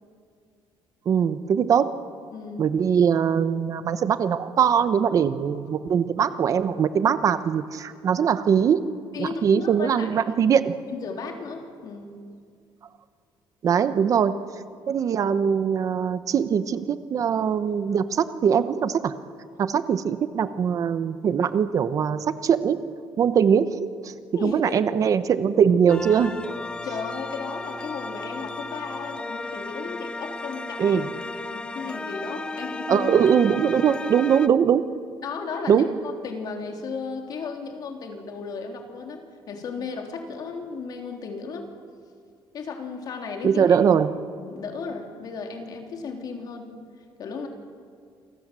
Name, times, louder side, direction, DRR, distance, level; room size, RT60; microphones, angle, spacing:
voice 1, 1.1-1.9 2.6-8.8 9.2-10.7 13.6-14.4 14.9-19.1 19.6-22.8 23.2-23.7 24.0-24.1 24.4-26.4 30.8-31.1 32.9-34.8 35.7-35.9 43.4-44.1, right 7 dB, 40° right, 12 dB, 0.9 m, -21 dB
voice 2, 2.3-2.7 9.1-10.2 10.6-12.1 24.3-24.8 26.8-31.0 31.3-33.1 34.4-34.5 35.2-41.7 42.5-43.8 44.3-46.7 47.2-47.5, left 4 dB, 45° left, 3 dB, 3.5 m, -35 dB
sound 1, 25.9-34.5, left 3 dB, 10° left, 0.6 m, -34 dB
29.0 x 24.5 x 7.5 m, 2.2 s
cardioid pair, 175°, 9 cm